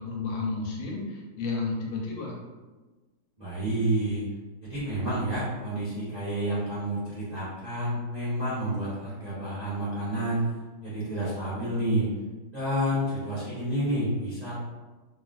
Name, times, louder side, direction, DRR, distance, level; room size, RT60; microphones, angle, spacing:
voice 1, 0.0-2.4, left 3 dB, 80° left, -2 dB, 1.3 m, -32 dB
voice 2, 3.4-4.2 4.6-10.5 10.8-12.1 12.5-14.5, right 1 dB, 55° right, -11 dB, 0.4 m, -29 dB
3.4 x 2.3 x 2.4 m, 1.2 s
omnidirectional pair, 2.2 m